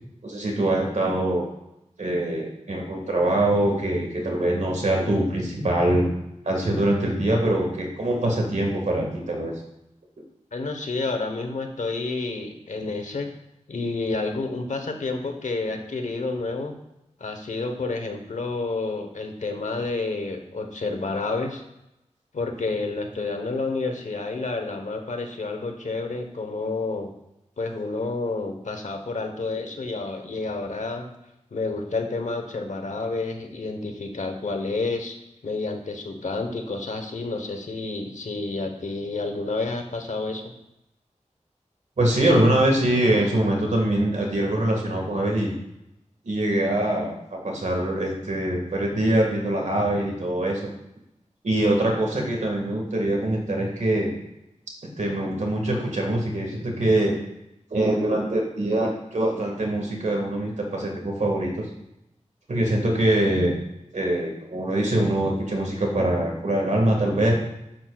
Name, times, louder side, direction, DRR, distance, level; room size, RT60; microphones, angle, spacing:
voice 1, 0.2-1.5 2.0-6.1 6.5-9.5 42.0-45.5 46.2-50.6 51.4-54.1 55.0-57.2 57.7-61.7 62.5-63.6 63.9-67.3, right 1 dB, 70° right, 1 dB, 1.7 m, -23 dB
voice 2, 10.5-13.3 13.7-16.7 17.2-21.6 22.3-27.1 27.6-31.1 31.5-35.2 35.4-40.5, left 3 dB, 80° left, 5 dB, 1.0 m, -29 dB
8.6 x 7.7 x 2.4 m, 0.88 s
wide cardioid pair, 50°, 13 cm